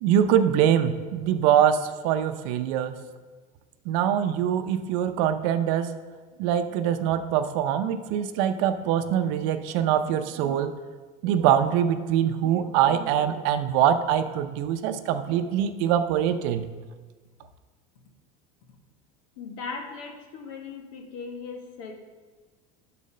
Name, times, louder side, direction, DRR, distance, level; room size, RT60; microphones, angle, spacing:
voice 1, 0.0-2.9 3.9-6.0 6.4-10.8 11.2-16.6, right 9 dB, 65° right, 9 dB, 0.6 m, -23 dB
voice 2, 19.4-21.9, left 4 dB, 85° left, 3 dB, 1.5 m, -38 dB
11.5 x 4.2 x 5.5 m, 1.4 s
cardioid pair, 160°, 17 cm